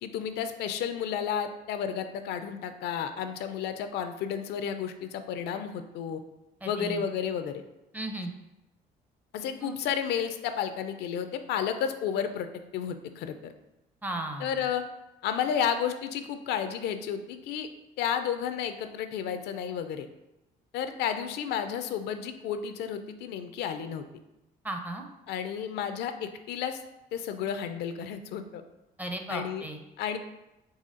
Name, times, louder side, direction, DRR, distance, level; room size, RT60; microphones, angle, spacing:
voice 1, 0.0-6.2 6.7-7.6 9.3-12.5 12.7-13.5 14.4-14.8 15.2-17.7 18.0-20.1 20.7-24.0 25.3-26.8 27.1-28.6 29.3-29.7 30.0-30.2, left 8 dB, 75° left, 9 dB, 0.4 m, -32 dB
voice 2, 6.6-7.0 7.9-8.3 9.6-9.7 14.0-14.5 24.6-25.1 29.0-29.8, right 2 dB, 10° right, 4 dB, 0.5 m, -35 dB
4.1 x 3.0 x 3.7 m, 0.93 s
cardioid pair, 110°, 17 cm